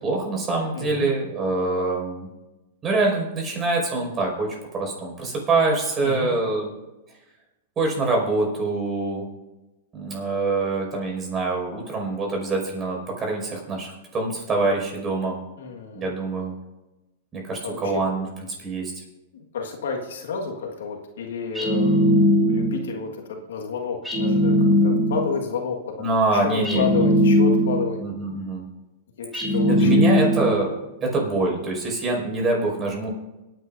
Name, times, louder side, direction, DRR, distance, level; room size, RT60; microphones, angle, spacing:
voice 1, 0.0-2.3 2.8-6.7 7.8-9.3 9.9-15.4 15.9-16.5 17.3-18.3 18.6-18.9 26.0-26.9 28.0-28.6 29.7-30.7 31.0-33.1, right 3 dB, 25° right, 0 dB, 5.6 m, -25 dB
voice 2, 0.7-1.1 6.0-6.3 15.6-16.1 17.6-18.1 19.3-28.0 29.2-30.3, left 5 dB, 80° left, 2 dB, 1.7 m, -31 dB
sound 1, 21.5-22.9 24.0-25.4 26.6-28.0 29.3-30.7, equal, 5° right, 2.6 m, -19 dB
26.0 x 9.3 x 2.7 m, 1.0 s
hypercardioid pair, 120°, 0 cm